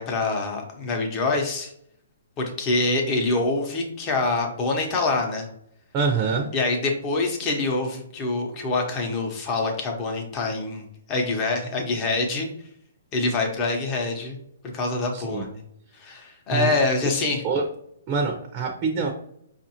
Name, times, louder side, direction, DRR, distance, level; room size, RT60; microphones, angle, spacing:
voice 1, 0.0-1.7 2.4-5.5 6.5-10.8 11.1-12.5 13.1-14.4 14.7-15.6 16.0-17.4, left 3 dB, 25° left, 2 dB, 0.9 m, -25 dB
voice 2, 5.9-6.5 15.1-15.4 16.5-16.7 17.0-17.1 17.4-17.7 18.1-19.1, right 5 dB, 25° right, 2 dB, 0.6 m, -25 dB
5.3 x 2.5 x 2.8 m, 0.71 s
hypercardioid pair, 150°, 0 cm